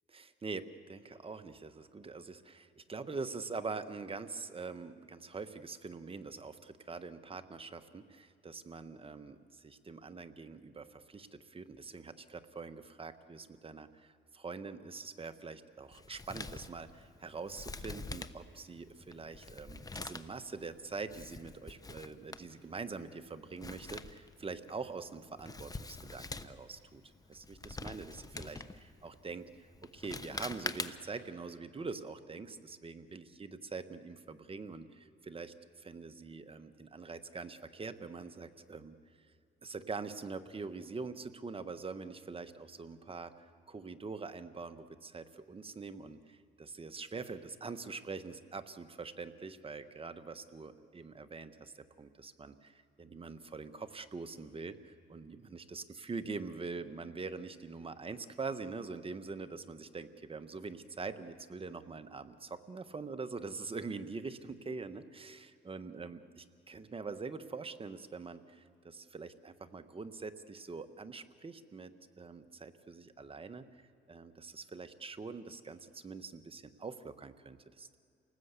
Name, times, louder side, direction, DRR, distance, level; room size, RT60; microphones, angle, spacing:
voice 1, 0.1-29.7 29.9-39.0 39.6-71.9 72.2-73.7 74.1-78.0, right 4 dB, 30° right, 9 dB, 1.3 m, -44 dB
Male speech man speaking, 15.9-31.2, left 3 dB, 20° left, 1.0 m, -46 dB
29.0 x 19.0 x 8.3 m, 2.4 s
cardioid pair, 90°, 20 cm